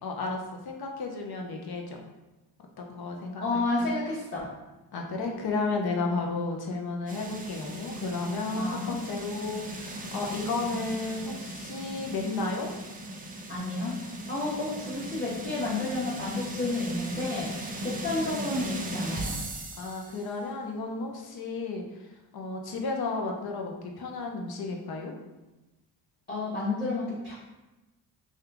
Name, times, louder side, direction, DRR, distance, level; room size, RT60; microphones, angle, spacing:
voice 1, 0.0-2.0 2.8-4.0 4.9-12.7 19.8-21.8 22.3-25.1, left 3 dB, 55° left, 1 dB, 0.7 m, -33 dB
voice 2, 3.4-4.5 8.5-8.9 13.5-13.9 14.3-17.5 17.8-19.3 26.3-27.3, left 2 dB, 20° left, -11 dB, 1.2 m, -31 dB
sound 1, 7.1-20.3, right 1 dB, 20° right, 0.4 m, -38 dB
2.8 x 2.5 x 3.4 m, 1.1 s
supercardioid pair, 60°, 45 cm